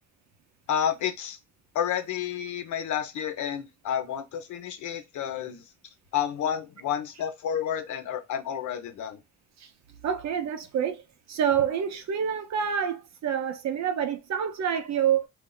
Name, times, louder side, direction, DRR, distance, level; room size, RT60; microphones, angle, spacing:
voice 1, 0.7-1.4 1.7-5.6 6.1-9.2, left 9 dB, 75° left, 0.7 m, -30 dB
voice 2, 10.0-11.0 11.3-15.3, right 8 dB, 65° right, 0.7 m, -27 dB
2.4 x 2.0 x 3.7 m
cardioid pair, 90°, 30 cm